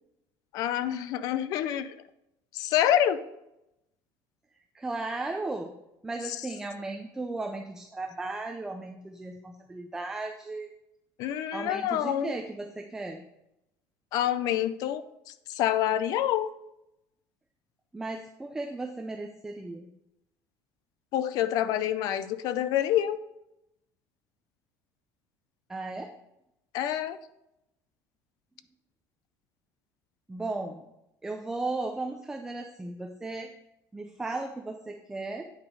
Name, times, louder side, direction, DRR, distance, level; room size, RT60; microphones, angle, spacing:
voice 1, 0.5-2.0 2.5-3.2 11.2-12.4 14.1-15.0 15.5-16.5 21.1-23.2 26.7-27.2, left 11 dB, 55° left, 14 dB, 0.4 m, -27 dB
voice 2, 4.7-5.8 6.0-10.7 11.5-13.3 17.9-19.9 25.7-26.1 30.3-30.8 31.2-33.5 33.9-35.5, right 2 dB, 5° right, 3 dB, 0.5 m, -36 dB
8.8 x 5.0 x 5.3 m, 0.85 s
cardioid pair, 170°, 8 cm